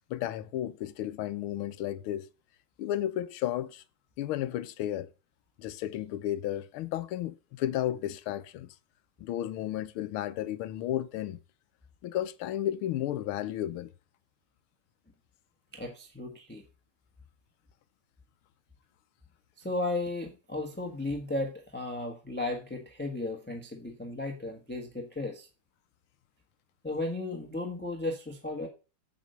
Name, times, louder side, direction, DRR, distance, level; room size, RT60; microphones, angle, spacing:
voice 1, 0.1-2.3 2.8-3.8 4.2-5.1 5.6-8.7 9.2-11.4 12.0-13.9, left 12 dB, 85° left, 1.6 m, -33 dB
voice 2, 15.7-16.6 19.6-25.5 26.8-28.7, left 2 dB, 5° left, 1.1 m, -35 dB
8.0 x 7.6 x 5.4 m
omnidirectional pair, 2.3 m